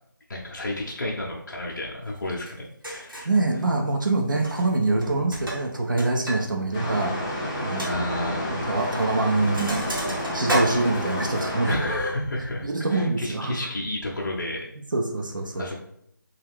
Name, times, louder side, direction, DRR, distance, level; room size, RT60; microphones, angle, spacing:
voice 1, 0.3-3.3 7.8-8.8 10.7-10.8 11.7-14.7 15.6-15.8, left 1 dB, 60° left, -3 dB, 0.6 m, -31 dB
Sink (filling or washing), 2.5-2.6 2.8-3.4 4.3-4.7 5.0-6.4 6.7-6.8 7.2-7.3 7.8-7.9 8.8-9.0 9.3-11.4, right 1 dB, 85° right, 0.9 m, -31 dB
voice 2, 3.2-7.2 7.6-8.0 8.5-11.8 12.6-13.6 14.9-15.7, right 2 dB, 70° right, 1 dB, 0.6 m, -25 dB
sound 1, 6.7-11.8, left 1 dB, 15° left, 0.4 m, -30 dB
2.3 x 2.3 x 3.4 m, 0.73 s
figure-of-eight pair, 160°, 11 cm